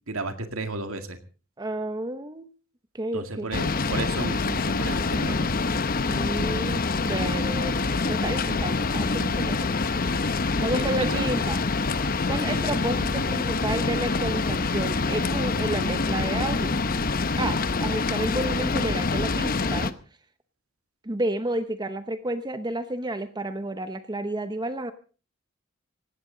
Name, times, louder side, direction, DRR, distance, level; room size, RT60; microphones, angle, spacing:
voice 1, 0.1-1.2 3.1-5.5 10.7-11.3 12.3-12.6, right 3 dB, 85° right, 7 dB, 2.1 m, -33 dB
voice 2, 1.6-2.5 2.9-3.5 6.0-9.7 10.3-11.6 12.0-16.8 17.4-19.9 21.0-24.9, right 1 dB, 20° right, 10 dB, 0.9 m, -31 dB
sound 1, 3.5-19.9, left 3 dB, 45° left, 0.8 m, -26 dB
19.0 x 16.0 x 3.9 m, 0.37 s
head